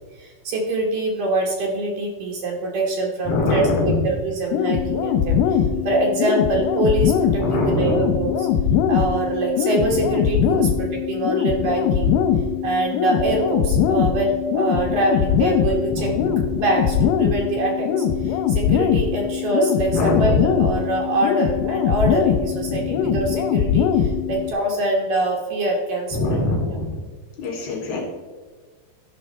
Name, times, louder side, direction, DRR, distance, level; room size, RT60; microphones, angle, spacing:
voice 1, 0.2-5.6 5.8-8.5 8.9-12.1 12.6-16.1 16.5-26.4 26.7-26.8, right 2 dB, 70° right, -1 dB, 2.1 m, -24 dB
voice 2, 3.3-4.0 7.4-8.0 15.9-16.3 19.9-20.4 22.7-23.2 26.2-26.9 27.4-28.0, left 2 dB, 50° left, -3 dB, 3.7 m, -23 dB
sound 1, 4.5-24.5, left 8 dB, 85° left, 3.0 m, -21 dB
13.5 x 5.3 x 4.4 m, 1.4 s
omnidirectional pair, 5.5 m